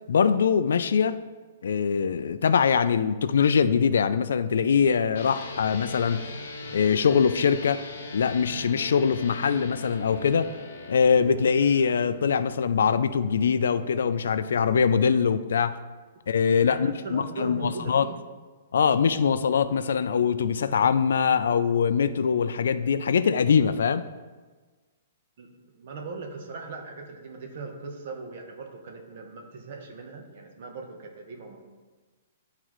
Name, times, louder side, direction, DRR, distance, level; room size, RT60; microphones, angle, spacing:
voice 1, 0.1-1.2 1.6-6.2 6.7-7.8 8.1-10.5 10.9-15.8 16.3-18.1 18.7-24.1, left 6 dB, 80° left, 0.3 m, -23 dB
sound 1, 5.1-14.6, left 2 dB, 60° left, 0.8 m, -40 dB
voice 2, 16.7-18.2 25.4-25.5 25.7-31.6, right 3 dB, 45° right, 0.9 m, -39 dB
10.5 x 3.7 x 3.1 m
hypercardioid pair, 175°, 0 cm